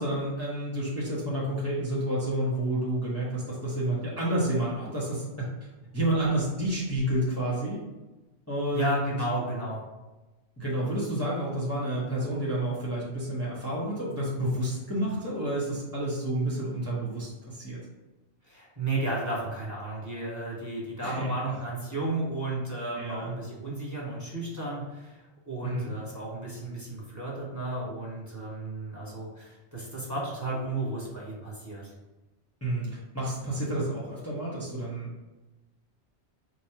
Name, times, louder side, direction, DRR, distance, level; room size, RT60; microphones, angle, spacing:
voice 1, 0.0-5.5 5.9-7.8 8.5-9.1 10.6-17.8 21.0-21.3 23.0-23.3 25.6-25.9 32.6-35.1, right 1 dB, 15° left, -7 dB, 0.8 m, -30 dB
voice 2, 8.7-9.8 18.5-31.9, right 2 dB, 15° right, -5 dB, 1.1 m, -33 dB
4.4 x 2.2 x 4.6 m, 1.1 s
omnidirectional pair, 1.1 m